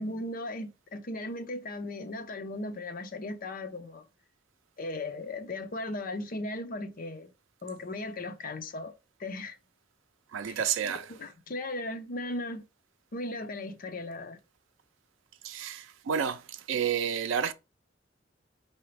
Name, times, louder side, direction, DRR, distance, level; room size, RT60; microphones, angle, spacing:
voice 1, 0.0-4.0 4.8-7.3 7.6-8.9 9.2-9.6 10.5-12.6 13.1-14.4, left 2 dB, 45° left, 0.6 m, -37 dB
voice 2, 10.3-11.1 15.4-17.5, right 7 dB, 90° right, 0.4 m, -30 dB
4.8 x 2.8 x 3.2 m
head